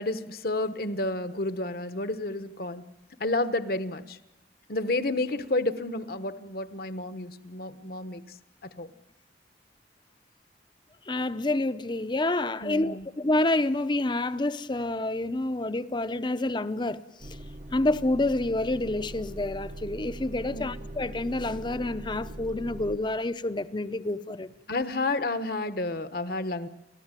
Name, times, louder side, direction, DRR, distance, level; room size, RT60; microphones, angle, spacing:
voice 1, 0.0-2.8 3.2-4.2 4.7-8.2 8.8-8.9 12.6-13.0 20.5-20.7 24.7-26.7, left 2 dB, 55° left, 1.1 m, -30 dB
voice 2, 11.1-17.4 17.7-24.5, left 2 dB, 25° left, 0.7 m, -28 dB
Motor vehicle (road) / Engine starting / Idling, 17.2-23.0, right 1 dB, 45° right, 0.9 m, -41 dB
30.0 x 13.5 x 9.0 m
head